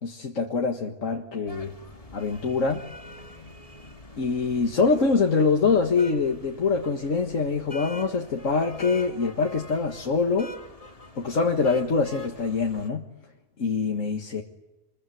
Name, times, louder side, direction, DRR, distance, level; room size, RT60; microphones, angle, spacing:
voice 1, 0.0-1.7 2.1-2.8 4.2-10.5 11.2-13.0 13.6-14.4, left 4 dB, 55° left, 2 dB, 2.1 m, -24 dB
sound 1, 1.5-12.9, left 2 dB, 25° left, 2.1 m, -45 dB
27.5 x 22.0 x 9.4 m, 1.0 s
omnidirectional pair, 1.6 m